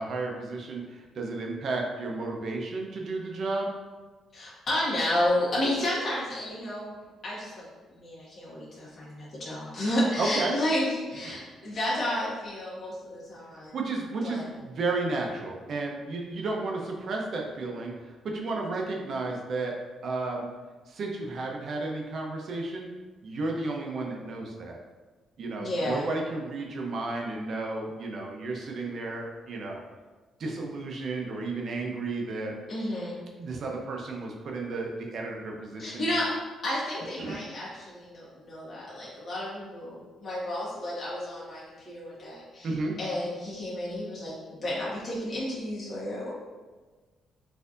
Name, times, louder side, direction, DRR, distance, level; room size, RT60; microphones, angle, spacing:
voice 1, 0.0-3.7 10.2-10.5 11.2-11.4 13.7-19.8 20.0-20.5 20.9-22.9 23.2-24.8 25.4-29.8 30.4-32.5 33.4-36.1 37.2-37.4 42.6-43.0, right 3 dB, 60° right, 0 dB, 0.6 m, -32 dB
voice 2, 4.3-6.9 7.2-13.8 14.2-14.4 25.6-26.1 32.7-33.2 35.8-36.3 36.6-42.7 43.0-44.3 44.6-46.3, left 1 dB, 45° left, -8 dB, 1.3 m, -31 dB
4.3 x 2.6 x 2.5 m, 1.3 s
cardioid pair, 90°, 0 cm